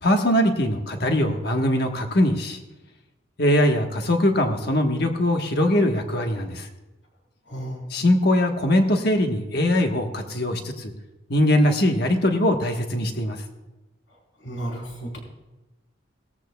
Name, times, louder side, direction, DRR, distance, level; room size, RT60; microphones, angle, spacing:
voice 1, 0.0-2.6 3.4-6.7 7.9-10.9 11.3-13.4, left 1 dB, 55° left, 4 dB, 1.3 m, -21 dB
voice 2, 7.5-7.8 14.4-15.2, right 1 dB, 75° left, -1 dB, 4.0 m, -33 dB
18.0 x 13.5 x 2.3 m, 1.1 s
head